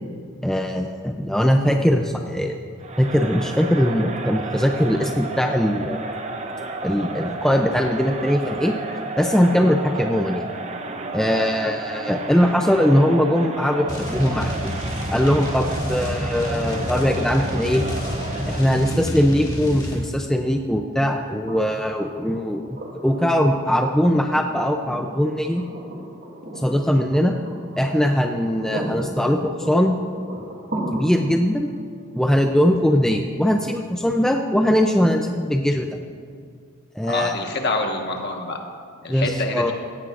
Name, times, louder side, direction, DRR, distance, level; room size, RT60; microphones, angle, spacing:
voice 1, 0.4-2.6 3.0-6.1 6.8-8.7 9.2-10.4 11.1-14.7 15.1-17.8 18.5-25.6 26.6-27.3 27.8-30.0 30.9-31.7 32.1-35.9 36.9-37.3 39.1-39.7, equal, 5° left, 3 dB, 0.4 m, -21 dB
Crowd, 2.8-19.0, right 3 dB, 30° right, 0.7 m, -32 dB
sound 1, 13.9-20.0, equal, 20° left, 2.1 m, -29 dB
sound 2, 21.5-35.4 37.2-37.3, right 1 dB, 55° right, 2.5 m, -36 dB
voice 2, 37.1-38.6 39.0-39.7, left 2 dB, 50° left, 2 dB, 1.4 m, -26 dB
17.0 x 15.5 x 2.5 m, 2.1 s
head